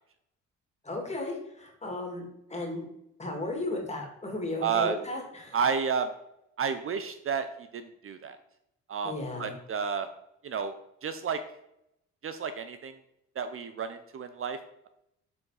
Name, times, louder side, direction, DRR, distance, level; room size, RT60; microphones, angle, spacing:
voice 1, 0.8-2.8 3.2-5.6 9.0-9.5, left 2 dB, 20° left, 1 dB, 2.3 m, -35 dB
voice 2, 4.6-5.0 5.5-6.1 6.6-8.4 8.9-9.1 9.4-10.1 10.4-10.8 11.0-11.4 12.2-13.0 13.4-14.6, right 6 dB, 45° right, 9 dB, 0.6 m, -31 dB
7.2 x 4.4 x 4.8 m, 0.79 s
cardioid pair, 90°, 30 cm